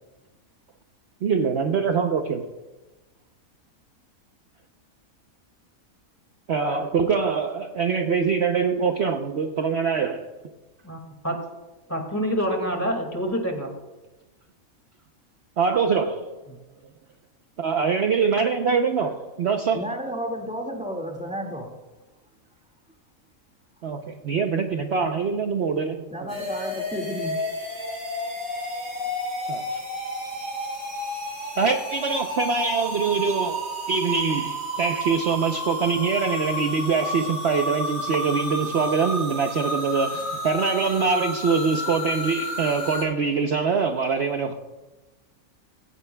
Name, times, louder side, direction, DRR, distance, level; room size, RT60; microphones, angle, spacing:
voice 1, 1.2-2.5 6.5-10.3 15.6-16.3 17.6-19.8 23.8-26.3 29.5-29.8 31.5-33.6 33.9-44.5, right 5 dB, 55° right, 5 dB, 0.9 m, -24 dB
voice 2, 11.9-13.7 16.5-16.6, equal, 10° left, 2 dB, 2.0 m, -26 dB
voice 3, 19.7-21.8 26.1-27.4, equal, 5° right, 0 dB, 1.8 m, -32 dB
sound 1, 26.3-43.0, equal, 75° right, 5.6 m, -31 dB
16.5 x 16.5 x 2.3 m, 1.1 s
omnidirectional pair, 1.5 m